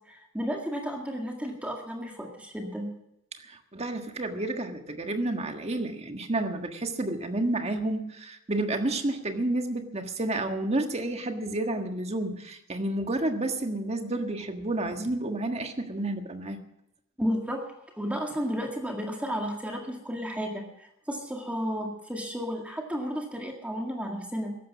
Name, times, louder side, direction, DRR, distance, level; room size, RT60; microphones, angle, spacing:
voice 1, 0.1-2.9 17.2-24.6, equal, 5° right, 1 dB, 1.9 m, -33 dB
voice 2, 3.4-16.6, right 2 dB, 30° right, 5 dB, 1.5 m, -30 dB
14.5 x 11.5 x 7.2 m, 0.82 s
head